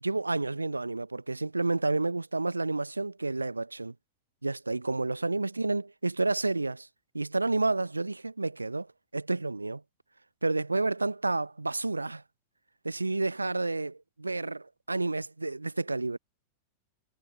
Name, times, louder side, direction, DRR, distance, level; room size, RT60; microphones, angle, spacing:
voice 1, 0.0-3.9 4.4-6.9 7.1-8.9 9.1-9.8 10.4-12.2 12.8-16.2, right 3 dB, 80° right, 0.8 m, -30 dB
figure-of-eight pair, 90°, 0 cm